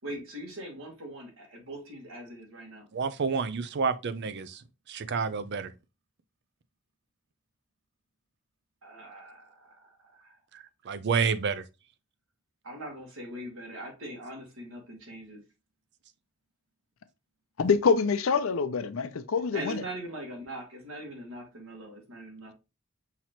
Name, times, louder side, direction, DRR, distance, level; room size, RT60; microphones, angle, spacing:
voice 1, 0.0-2.9 8.8-9.9 10.2-10.4 12.6-15.4 19.5-22.5, right 1 dB, 90° right, 1.8 m, -41 dB
voice 2, 2.9-4.6 4.9-5.7 10.5-11.6, right 5 dB, 55° right, 0.5 m, -29 dB
voice 3, 17.6-19.8, left 5 dB, 80° left, 0.5 m, -25 dB
5.7 x 2.9 x 3.0 m
head